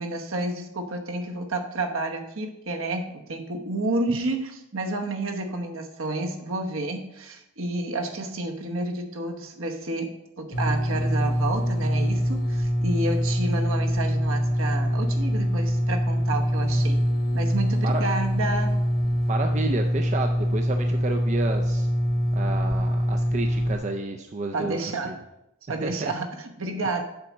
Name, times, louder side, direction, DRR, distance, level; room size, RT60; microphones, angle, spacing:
voice 1, 0.0-17.0 17.3-18.8 24.5-25.2 25.7-27.0, right 2 dB, 65° right, 3 dB, 1.0 m, -30 dB
sound 1, 10.5-23.8, equal, 40° left, 1.0 m, -24 dB
voice 2, 19.2-21.9 22.4-24.8 25.0-25.2 25.7-26.1, right 3 dB, 30° right, 4 dB, 0.4 m, -31 dB
7.7 x 4.1 x 5.9 m, 0.86 s
head